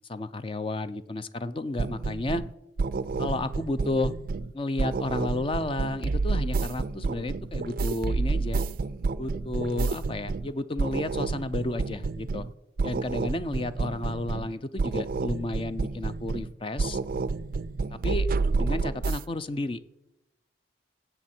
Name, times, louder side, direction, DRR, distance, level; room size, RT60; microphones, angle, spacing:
voice 1, 0.1-2.4 3.2-4.2 4.5-8.7 9.2-12.5 12.8-17.0 17.9-18.3 18.5-19.8, left 2 dB, 25° left, 12 dB, 0.4 m, -32 dB
sound 1, 1.8-2.5 2.8-4.5 4.8-10.5 10.8-12.5 12.8-14.5 14.8-16.5 16.8-19.2, right 4 dB, 50° right, 0.4 m, -29 dB
17.0 x 8.0 x 4.4 m, 0.92 s
head